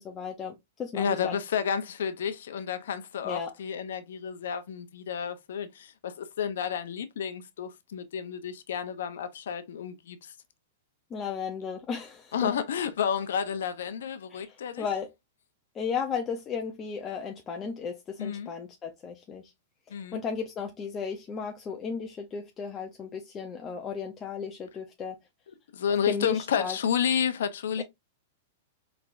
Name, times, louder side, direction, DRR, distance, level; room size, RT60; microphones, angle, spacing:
voice 1, 0.0-1.4 3.2-3.5 11.1-12.5 14.3-15.1 15.7-19.5 19.9-25.2 26.1-26.8 27.8-27.9, left 6 dB, 25° left, 0.7 m, -35 dB
voice 2, 0.9-10.3 12.3-14.9 18.2-18.5 19.9-20.2 25.7-27.8, left 7 dB, 80° left, 0.6 m, -31 dB
4.2 x 3.4 x 2.5 m
hypercardioid pair, 125°, 0 cm